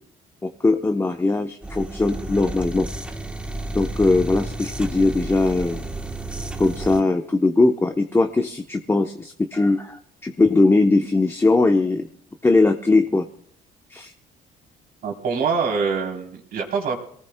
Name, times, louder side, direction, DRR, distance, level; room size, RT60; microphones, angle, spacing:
voice 1, 0.4-2.9 3.7-5.9 6.6-12.1 12.4-13.2 13.9-14.1, left 3 dB, 15° left, 4 dB, 0.9 m, -20 dB
sound 1, 1.6-7.0, right 2 dB, 5° right, 1.2 m, -31 dB
voice 2, 15.0-17.0, right 5 dB, 60° right, 1 dB, 3.6 m, -24 dB
27.0 x 18.5 x 2.3 m, 0.62 s
cardioid pair, 110°, 17 cm